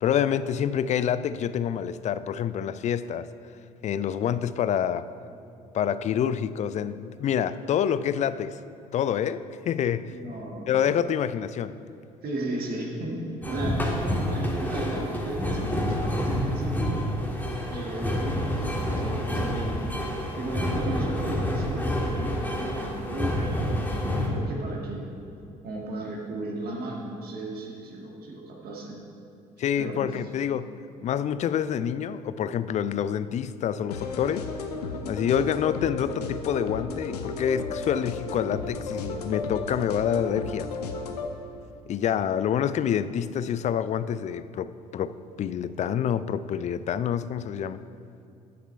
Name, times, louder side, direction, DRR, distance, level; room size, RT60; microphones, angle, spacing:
voice 1, 0.0-3.3 3.8-5.1 5.7-8.6 8.9-10.1 10.7-11.8 29.6-30.7 31.0-34.5 35.1-40.7 41.9-47.8, left 9 dB, 35° left, 14 dB, 0.4 m, -27 dB
voice 2, 10.1-10.9 12.2-17.0 17.7-25.2 25.6-29.0 29.8-30.1, right 2 dB, 50° right, -1 dB, 1.7 m, -35 dB
sound 1, 13.4-24.3, equal, 10° left, 1.7 m, -28 dB
sound 2, 33.9-41.3, left 4 dB, 80° left, 0.7 m, -34 dB
10.5 x 6.7 x 4.4 m, 2.6 s
figure-of-eight pair, 55°, 20 cm